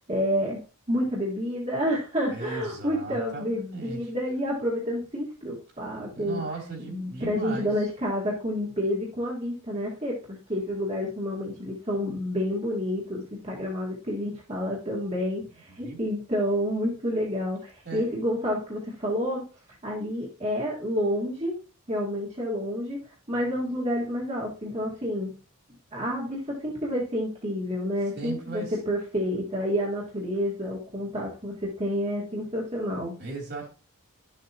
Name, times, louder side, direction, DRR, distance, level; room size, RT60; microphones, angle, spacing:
voice 1, 0.1-0.6 0.9-6.4 6.9-19.4 19.8-21.5 21.9-23.0 23.3-25.3 25.9-33.1, equal, 30° right, 2.0 m, -29 dB
voice 2, 2.3-4.1 6.1-7.7 15.8-16.0 17.8-18.1 28.1-28.8 33.2-33.7, right 3 dB, 50° right, 3.3 m, -37 dB
11.5 x 7.5 x 3.0 m
head